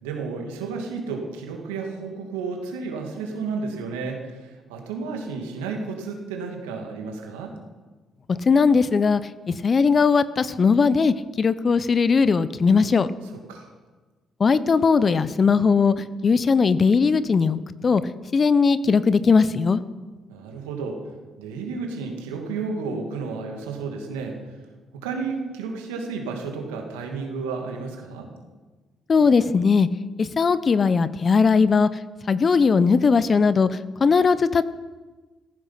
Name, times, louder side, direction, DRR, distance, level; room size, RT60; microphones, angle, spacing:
voice 1, 0.0-7.5 13.2-13.7 20.3-21.0 21.4-24.4 24.9-28.3, right 4 dB, 90° right, 2 dB, 2.5 m, -32 dB
voice 2, 8.3-9.2 9.5-13.1 14.4-15.9 16.2-17.6 17.8-18.0 18.3-19.8 29.1-29.9 30.2-31.9 32.3-33.7 34.0-34.6, left 5 dB, 45° left, 15 dB, 0.9 m, -19 dB
15.0 x 14.5 x 5.9 m, 1.3 s
hypercardioid pair, 50°, 0 cm